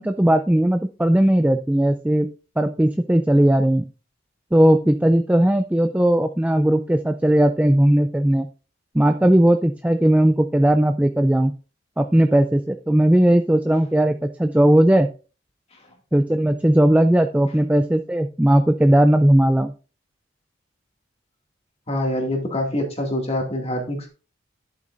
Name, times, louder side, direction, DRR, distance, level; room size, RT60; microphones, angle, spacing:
voice 1, 0.0-2.3 2.6-3.9 4.5-8.5 8.9-11.5 12.0-15.1 16.1-19.7, right 1 dB, 5° right, 8 dB, 0.4 m, -17 dB
voice 2, 21.9-24.1, left 1 dB, 30° left, 2 dB, 2.2 m, -25 dB
10.5 x 7.9 x 2.5 m, 0.34 s
head